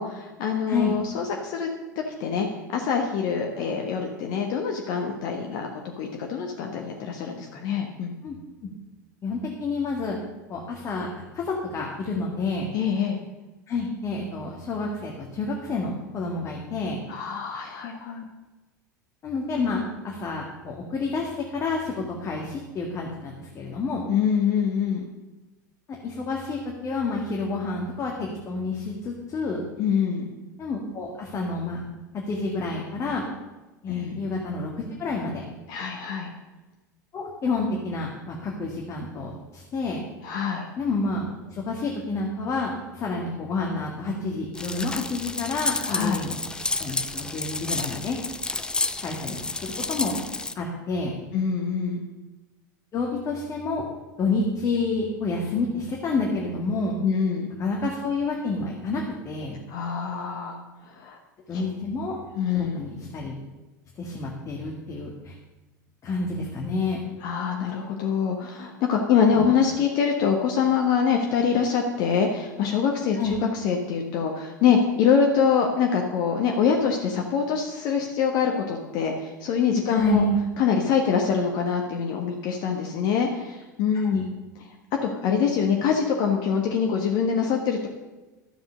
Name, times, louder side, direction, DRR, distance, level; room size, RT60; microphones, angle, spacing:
voice 1, 0.0-1.7 2.2-2.5 2.7-5.7 6.0-8.1 12.7-13.2 17.1-18.3 24.1-25.0 29.8-30.2 33.9-34.2 35.7-36.3 40.2-40.7 45.8-46.3 51.3-52.0 57.0-57.5 59.7-60.6 61.0-61.2 61.5-61.6 62.3-62.8 67.2-80.2 80.6-84.2 85.0-87.9, left 6 dB, 45° left, 2 dB, 1.3 m, -24 dB
voice 2, 9.2-10.2 10.5-12.7 13.7-17.0 19.2-24.1 25.9-29.6 30.6-31.8 32.3-33.2 33.8-35.4 37.1-40.0 40.8-46.4 46.8-48.2 49.0-50.2 50.6-51.1 52.9-53.8 54.2-57.0 57.6-59.6 61.5-62.2 62.5-63.3 64.0-65.3 66.0-67.0 69.3-69.5 73.1-73.4 79.9-80.4 84.0-84.3, left 3 dB, 30° left, -1 dB, 2.0 m, -29 dB
sound 1, 44.6-50.5, left 3 dB, 10° left, 0.6 m, -30 dB
12.5 x 7.7 x 6.6 m, 1.1 s
figure-of-eight pair, 80°, 10 cm